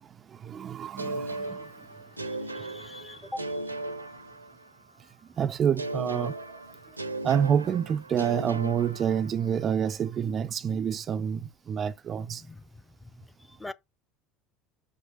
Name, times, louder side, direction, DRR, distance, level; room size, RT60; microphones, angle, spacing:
voice 1, 0.3-1.7 5.4-6.4 7.2-12.4, right 8 dB, 35° right, 0.4 m, -28 dB
sound 1, 1.0-4.9 5.8-9.6, right 2 dB, 90° right, 0.7 m, -37 dB
voice 2, 2.3-3.6 12.4-12.6 13.6-13.7, left 1 dB, 10° left, 0.7 m, -41 dB
6.1 x 5.5 x 5.3 m
figure-of-eight pair, 70°, 0 cm